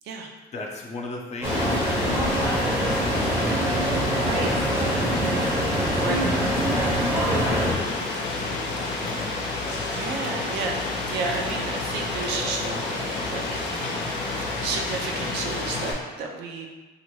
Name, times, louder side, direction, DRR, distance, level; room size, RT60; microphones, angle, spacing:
voice 1, 0.5-3.4 4.1-5.0 6.6-8.2 8.7-9.4, left 2 dB, 40° left, 0 dB, 0.6 m, -39 dB
Rain, 1.4-15.9, left 3 dB, 85° left, 0.6 m, -29 dB
sound 1, 1.4-7.7, right 1 dB, 15° right, 0.6 m, -24 dB
voice 2, 4.1-4.6 6.0-6.3 6.7-7.0 9.9-16.7, right 4 dB, 80° right, 1 dB, 0.5 m, -32 dB
3.0 x 2.5 x 3.0 m, 1.2 s
cardioid pair, 110°, 17 cm